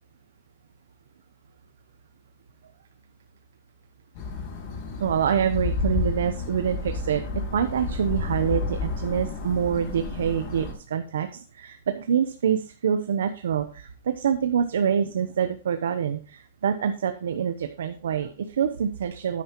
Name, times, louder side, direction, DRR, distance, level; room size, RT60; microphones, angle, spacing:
sound 1, 4.1-10.7, left 3 dB, 40° left, 5.1 m, -31 dB
voice 1, 5.0-19.4, right 8 dB, 85° right, 8 dB, 0.8 m, -26 dB
9.7 x 9.3 x 3.0 m, 0.37 s
supercardioid pair, 160°, 0 cm